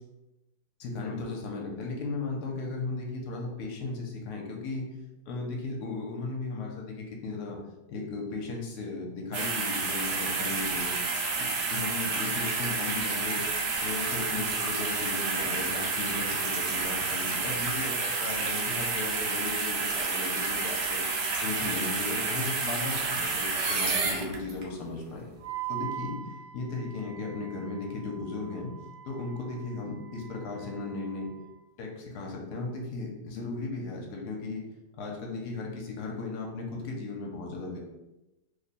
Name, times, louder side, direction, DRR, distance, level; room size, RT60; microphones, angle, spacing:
voice 1, 0.8-4.9 5.3-7.6 7.9-10.9 11.4-13.4 13.8-21.0 21.4-25.3 25.7-26.2 26.5-28.7 29.1-31.3 31.8-34.6 35.0-37.8, left 3 dB, 70° left, 0 dB, 1.2 m, -36 dB
sound 1, 9.3-24.6 25.1-25.3, right 4 dB, 80° right, 1.2 m, -30 dB
Wind instrument woodwind instrument, 25.4-31.6, right 12 dB, 45° right, 0.8 m, -42 dB
3.2 x 2.2 x 4.0 m, 0.98 s
omnidirectional pair, 1.8 m